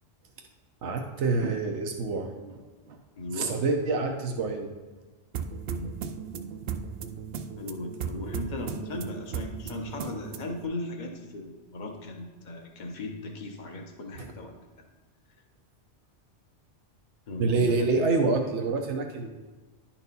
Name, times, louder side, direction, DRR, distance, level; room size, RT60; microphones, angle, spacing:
voice 1, 0.8-3.0 3.3-4.7 17.4-19.3, right 3 dB, 90° right, 3 dB, 1.1 m, -27 dB
voice 2, 3.2-3.6 5.7-5.9 7.6-14.5 17.3-18.1, left 2 dB, 45° left, 2 dB, 1.0 m, -37 dB
sound 1, 5.3-10.7, right 6 dB, 65° right, 0.7 m, -36 dB
10.5 x 4.5 x 4.0 m, 1.3 s
omnidirectional pair, 1.1 m